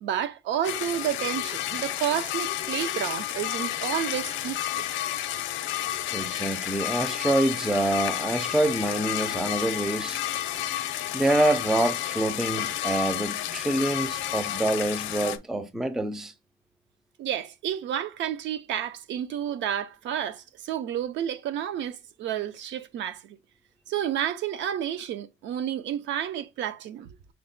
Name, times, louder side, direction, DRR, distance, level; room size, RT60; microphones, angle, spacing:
voice 1, 0.0-4.8 17.2-23.4 23.9-27.2, right 10 dB, 70° right, 0.5 m, -30 dB
sound 1, 0.6-15.4, left 13 dB, 75° left, 0.5 m, -31 dB
voice 2, 6.1-10.2 11.1-16.3, right 1 dB, ahead, 0.3 m, -26 dB
5.7 x 2.1 x 3.8 m
cardioid pair, 170°, 20 cm